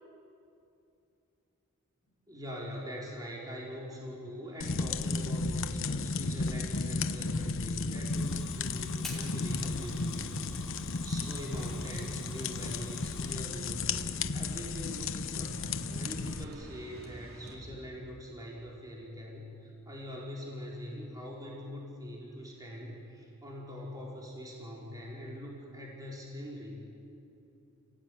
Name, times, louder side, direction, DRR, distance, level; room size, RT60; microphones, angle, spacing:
voice 1, 2.3-14.0 14.3-26.8, equal, 20° right, -4 dB, 4.7 m, -43 dB
sound 1, 4.6-16.4, left 3 dB, 65° left, 1.0 m, -34 dB
Fire, 8.0-13.4, left 1 dB, ahead, 4.6 m, -49 dB
sound 2, 9.5-18.3, right 1 dB, 80° right, 4.3 m, -52 dB
30.0 x 17.5 x 9.5 m, 2.7 s
head